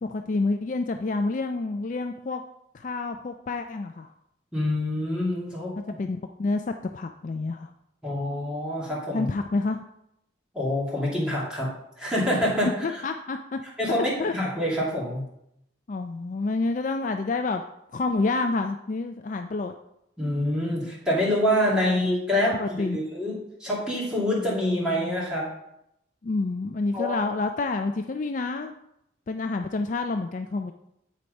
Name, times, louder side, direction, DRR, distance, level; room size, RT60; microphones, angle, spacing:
voice 1, 0.0-2.4 2.7-4.1 5.8-7.7 9.1-9.8 12.8-13.6 14.2-14.3 15.9-17.6 17.9-19.7 22.5-23.1 26.2-28.7 29.3-30.7, left 3 dB, 40° left, 6 dB, 0.3 m, -28 dB
voice 2, 4.5-6.0 8.0-9.3 10.5-11.7 12.0-12.7 13.8-15.2 20.2-22.5 22.9-23.3 23.6-25.5 26.9-27.2, left 1 dB, 5° right, -6 dB, 2.5 m, -26 dB
8.4 x 4.4 x 5.2 m, 0.79 s
head